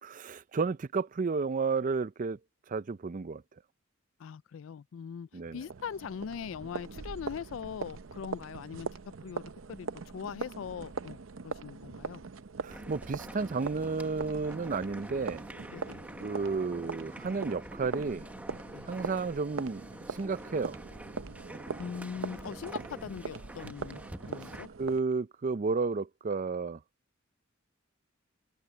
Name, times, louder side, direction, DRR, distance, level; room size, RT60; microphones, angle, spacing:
voice 1, 0.0-2.4 2.7-3.4 5.3-5.6 12.6-15.4 16.2-18.3 18.9-20.8 24.8-26.8, right 4 dB, 40° right, 0.5 m, -32 dB
voice 2, 4.2-8.9 9.2-9.4 9.7-11.2 11.4-12.2 15.7-16.0 18.7-18.9 21.8-24.0 24.3-24.7, left 7 dB, 70° left, 0.4 m, -41 dB
sound 1, 5.4-25.0, right 4 dB, 75° right, 0.7 m, -42 dB
sound 2, 12.7-24.7, right 1 dB, 5° right, 0.9 m, -46 dB
head